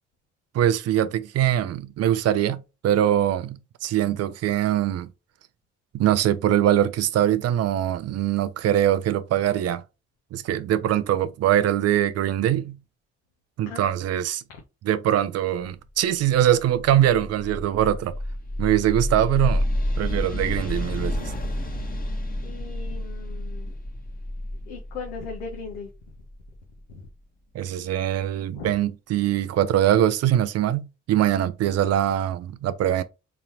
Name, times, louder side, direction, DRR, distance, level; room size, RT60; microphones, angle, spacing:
voice 1, 0.5-5.1 5.9-9.8 10.3-12.8 13.6-14.4 14.9-18.2 18.6-19.7 20.0-21.3 27.5-33.0, right 11 dB, 50° right, 0.5 m, -22 dB
voice 2, 13.7-14.3 22.4-23.7 24.7-25.9 26.9-27.1 28.5-28.8, left 5 dB, 80° left, 0.8 m, -38 dB
sound 1, 16.3-27.1, left 1 dB, 25° left, 1.1 m, -30 dB
3.8 x 3.0 x 2.8 m
figure-of-eight pair, 40°, 34 cm